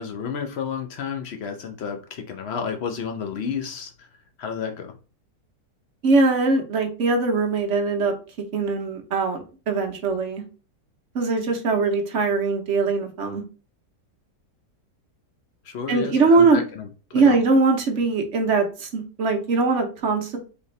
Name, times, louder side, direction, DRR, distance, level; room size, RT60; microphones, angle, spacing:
voice 1, 0.0-4.1 4.4-4.9 15.6-17.4, left 6 dB, 80° left, 0.5 m, -31 dB
voice 2, 6.0-8.1 8.5-10.4 11.1-13.4 15.9-16.6 17.1-20.4, right 3 dB, 50° right, 1.0 m, -21 dB
4.2 x 3.5 x 3.1 m
omnidirectional pair, 1.8 m